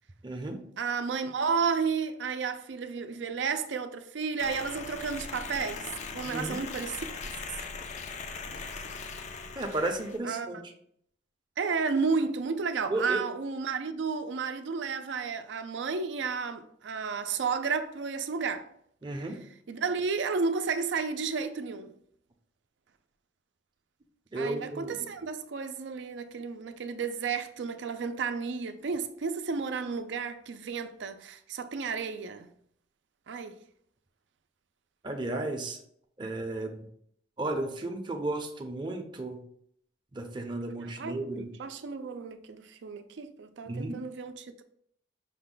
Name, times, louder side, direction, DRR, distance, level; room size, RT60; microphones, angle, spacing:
voice 1, 0.2-0.6 6.2-6.6 9.6-10.7 12.9-13.2 19.0-19.4 24.3-25.1 35.0-35.8 36.2-36.9 37.4-39.4 40.1-41.5 43.6-43.9, right 2 dB, 25° right, 0.6 m, -33 dB
voice 2, 0.8-7.3 10.2-10.5 11.6-18.7 19.7-21.9 24.3-32.5 33.3-33.6 40.8-44.6, right 5 dB, 70° right, 0.4 m, -32 dB
sound 1, 4.4-10.2, left 4 dB, 40° left, 0.4 m, -40 dB
5.7 x 2.2 x 3.8 m
head